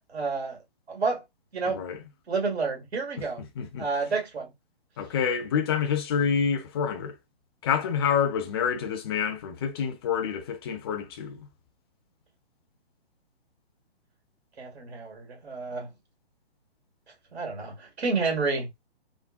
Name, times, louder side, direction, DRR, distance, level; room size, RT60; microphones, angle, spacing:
voice 1, 0.1-0.6 0.9-1.2 1.5-1.8 2.3-3.4 3.8-4.5 14.6-15.9 17.3-18.9, right 4 dB, 80° right, 1.9 m, -30 dB
voice 2, 1.7-2.0 3.4-3.9 5.0-7.1 7.6-11.5, left 7 dB, 25° left, 0.5 m, -28 dB
3.6 x 2.2 x 2.4 m
hypercardioid pair, 145°, 31 cm